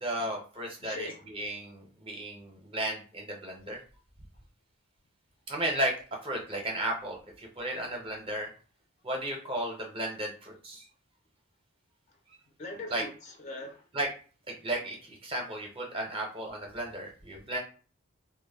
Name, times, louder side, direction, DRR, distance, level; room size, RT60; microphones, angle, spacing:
voice 1, 0.0-3.8 5.5-5.9 6.2-8.5 9.0-10.8 12.9-13.0 13.9-14.1 14.6-17.6, right 1 dB, 25° right, 0.5 m, -34 dB
voice 2, 0.8-1.2 12.6-13.8, left 2 dB, 35° left, 0.4 m, -41 dB
2.1 x 2.0 x 3.3 m
head